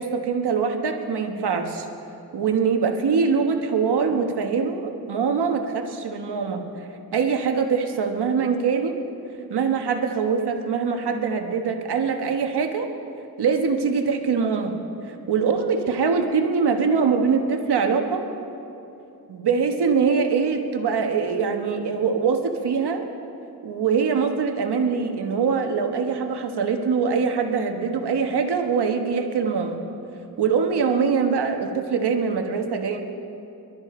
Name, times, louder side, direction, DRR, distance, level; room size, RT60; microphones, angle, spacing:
voice 1, 0.0-1.9 2.3-6.6 7.1-9.0 9.5-12.9 13.4-14.8 15.3-18.2 19.3-23.0 23.6-29.8 30.4-33.0, right 5 dB, 90° right, 4 dB, 1.3 m, -23 dB
22.5 x 12.5 x 4.4 m, 2.8 s
cardioid pair, 60°, 39 cm